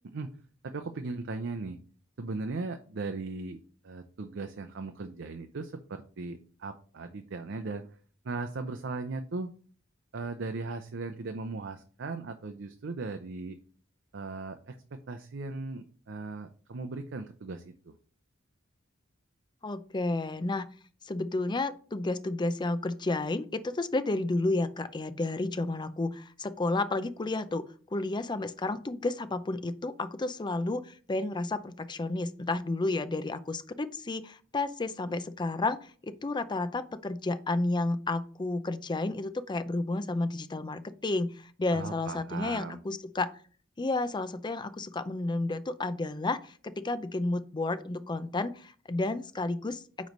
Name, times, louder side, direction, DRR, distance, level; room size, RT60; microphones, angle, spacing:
voice 1, 0.6-1.8 2.2-7.9 8.2-9.5 10.1-13.6 14.1-17.9 41.7-42.8, right 3 dB, 60° right, 7 dB, 0.6 m, -38 dB
voice 2, 19.6-20.7 21.0-27.7 27.9-43.3 43.8-50.1, left 2 dB, 20° left, 12 dB, 0.5 m, -31 dB
9.2 x 3.2 x 5.2 m, 0.42 s
head